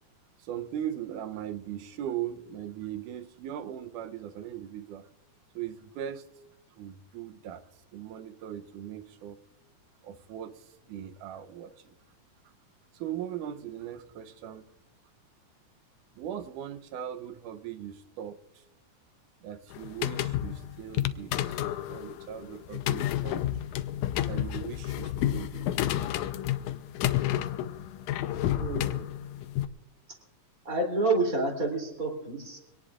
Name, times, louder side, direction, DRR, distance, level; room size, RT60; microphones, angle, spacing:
voice 1, 0.4-5.0 5.6-6.2 6.8-7.7 7.9-9.4 10.0-11.9 12.9-14.7 16.2-18.6 19.4-23.4 24.2-25.7, right 10 dB, 85° right, 9 dB, 2.3 m, -39 dB
sound 1, 19.7-29.7, left 12 dB, 80° left, 2.0 m, -30 dB
voice 2, 28.5-29.1 30.7-32.6, right 2 dB, 30° right, 2 dB, 3.4 m, -29 dB
24.5 x 18.0 x 2.5 m, 0.90 s
omnidirectional pair, 3.6 m